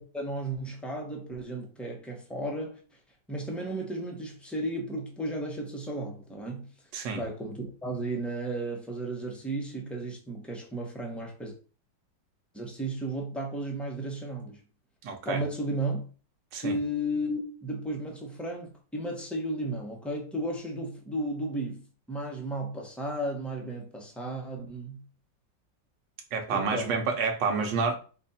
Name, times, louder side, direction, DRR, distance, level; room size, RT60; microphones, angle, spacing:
voice 1, 0.0-2.8 3.3-6.7 7.2-11.5 12.5-14.6 15.2-16.1 16.6-21.8 22.1-25.0 26.5-26.9, right 1 dB, ahead, 0.6 m, -34 dB
voice 2, 15.0-15.4 16.5-16.8 26.3-28.0, right 4 dB, 70° right, 1.5 m, -29 dB
5.2 x 2.5 x 4.1 m
omnidirectional pair, 2.0 m